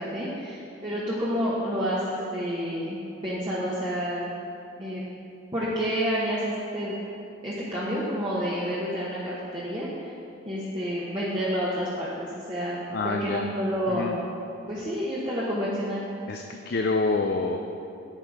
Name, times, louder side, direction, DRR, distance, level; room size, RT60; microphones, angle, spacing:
voice 1, 0.0-4.3 4.8-5.0 5.5-7.0 7.4-10.1 10.4-14.2 14.7-16.0, equal, 25° right, -9 dB, 1.1 m, -29 dB
voice 2, 12.9-13.5 13.9-14.2 16.3-17.6, left 3 dB, 50° left, 3 dB, 0.4 m, -27 dB
9.2 x 7.6 x 4.8 m, 2.6 s
head